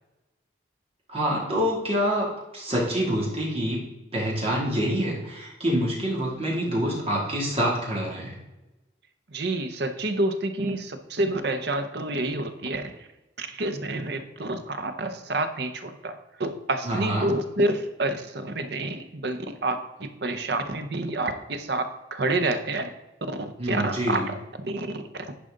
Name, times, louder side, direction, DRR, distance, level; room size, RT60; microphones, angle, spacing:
voice 1, 1.1-2.3 2.5-3.8 4.1-8.3 16.8-17.3 23.6-24.3, equal, 30° right, -4 dB, 2.6 m, -26 dB
voice 2, 9.3-13.1 13.4-21.8 22.1-22.9 23.4-24.3 24.6-25.3, right 2 dB, 60° right, 8 dB, 0.8 m, -28 dB
10.5 x 5.0 x 3.8 m, 1.0 s
head